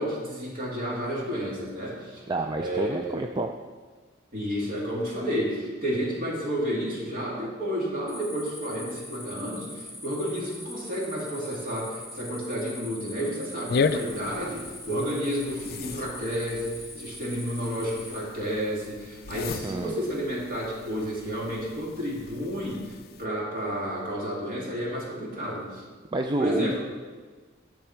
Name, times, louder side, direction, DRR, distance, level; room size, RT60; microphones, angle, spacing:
voice 1, 0.0-2.2 2.6-3.2 4.3-25.8 26.4-26.8, equal, 50° right, -3 dB, 2.6 m, -31 dB
voice 2, 2.3-3.6 19.6-19.9 26.1-26.9, right 2 dB, 25° right, 4 dB, 0.4 m, -28 dB
sound 1, 8.1-18.2, left 1 dB, ahead, 2.8 m, -43 dB
sound 2, 13.7-23.2, left 5 dB, 50° left, 0.4 m, -35 dB
10.5 x 7.6 x 4.5 m, 1.4 s
head